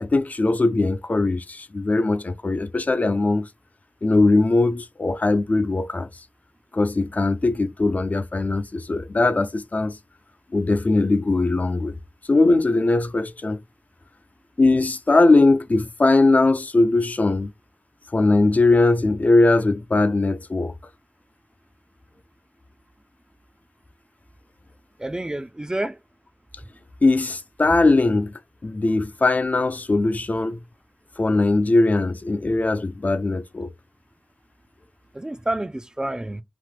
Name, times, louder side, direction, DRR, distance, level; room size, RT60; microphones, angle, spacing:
voice 1, 0.0-3.5 4.0-6.1 6.7-10.0 10.5-11.9 12.3-13.6 14.6-17.5 18.1-20.7 27.0-28.3 28.6-30.6 31.2-33.7, left 2 dB, 50° left, 0.4 m, -20 dB
voice 2, 25.0-26.0 35.1-36.4, right 1 dB, 20° right, 0.3 m, -28 dB
2.9 x 2.1 x 3.2 m
wide cardioid pair, 75°, 3 cm